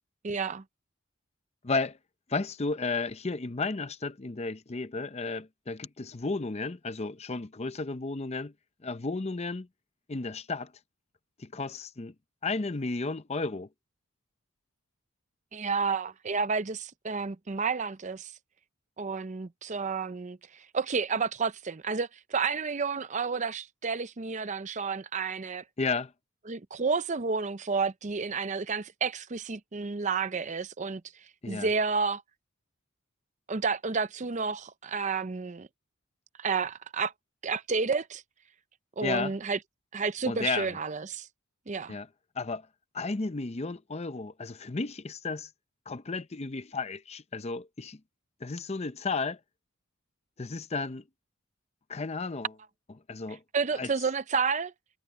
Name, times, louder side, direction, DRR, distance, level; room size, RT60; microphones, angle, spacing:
voice 1, 0.2-0.6 15.5-18.3 19.0-25.6 26.5-31.0 31.5-32.2 33.5-35.7 36.4-37.1 37.4-38.2 39.0-39.6 39.9-41.3 41.7-42.0 53.5-54.7, right 5 dB, 35° right, 0.6 m, -30 dB
voice 2, 1.6-2.0 2.3-8.5 8.8-9.7 10.1-10.7 11.4-12.1 12.4-13.7 25.8-26.1 31.4-31.7 39.0-39.3 40.3-40.8 41.9-42.1 42.4-42.7 42.9-45.5 45.9-48.0 48.4-49.4 50.4-51.0 51.9-52.5 53.1-53.4 53.7-53.9, left 3 dB, 30° left, 0.6 m, -33 dB
head